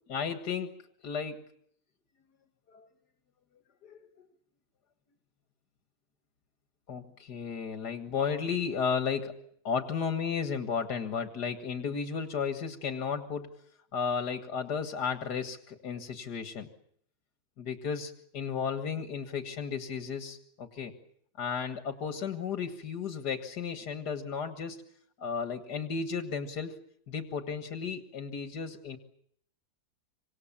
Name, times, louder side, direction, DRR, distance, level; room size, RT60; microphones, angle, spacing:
voice 1, 0.1-0.7 1.0-1.5 2.7-2.9 3.8-4.0 6.9-13.6 13.9-16.7 17.6-20.9 21.4-24.9 25.2-26.8 27.1-29.0, left 6 dB, 85° left, 7 dB, 2.2 m, -34 dB
27.0 x 25.5 x 7.3 m, 0.68 s
omnidirectional pair, 1.7 m